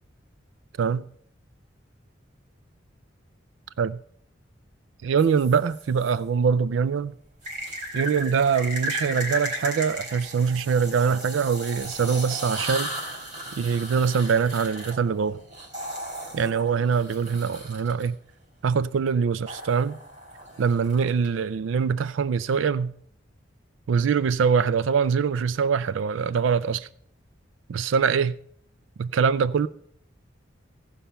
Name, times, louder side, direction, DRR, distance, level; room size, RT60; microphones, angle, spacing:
voice 1, 0.8-1.1 3.8-4.0 5.0-7.1 7.9-12.9 13.6-15.4 16.3-18.2 18.6-20.0 20.6-22.9 23.9-26.9 27.7-28.4 29.0-29.7, right 6 dB, 80° right, 0.4 m, -23 dB
sound 1, 5.2-6.1 7.4-18.1 19.5-21.3, right 1 dB, 40° right, 3.4 m, -35 dB
16.5 x 5.6 x 5.7 m
head